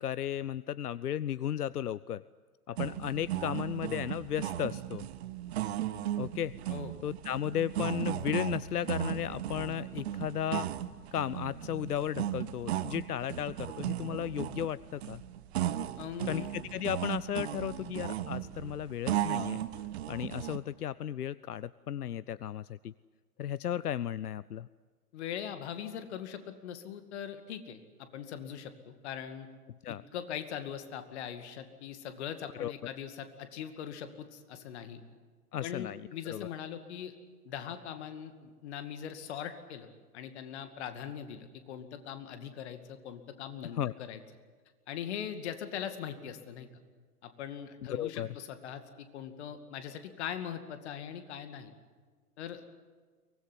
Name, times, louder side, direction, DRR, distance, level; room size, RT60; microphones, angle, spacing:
voice 1, 0.0-2.2 2.7-5.0 6.2-6.5 7.0-10.7 11.1-15.2 16.3-19.6 20.1-22.9 23.4-24.7 29.8-30.0 32.6-32.7 35.5-36.0 36.3-36.5 43.8-43.9 47.9-48.3, left 10 dB, 75° left, 20 dB, 0.6 m, -35 dB
sound 1, 2.8-20.6, right 12 dB, 45° right, 1.2 m, -36 dB
voice 2, 16.0-16.4 25.1-29.5 29.9-35.0 35.6-37.1 37.4-39.9 40.1-44.2 44.9-46.7 47.2-51.7 52.4-52.7, left 9 dB, 45° left, 9 dB, 2.3 m, -41 dB
23.5 x 19.0 x 9.8 m, 1.5 s
figure-of-eight pair, 115°, 46 cm